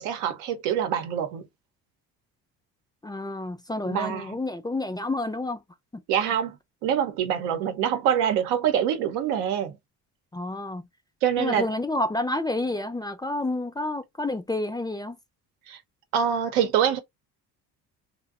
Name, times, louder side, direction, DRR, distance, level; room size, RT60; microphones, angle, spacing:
voice 1, 0.0-1.5 3.8-4.4 6.1-6.6 6.8-9.8 11.2-11.7 15.7-15.8 16.1-17.0, right 9 dB, 90° right, 0.7 m, -25 dB
voice 2, 3.0-5.6 5.9-6.0 10.3-10.8 11.4-15.2, left 2 dB, 10° left, 0.4 m, -29 dB
2.6 x 2.1 x 2.3 m
supercardioid pair, 85°, 39 cm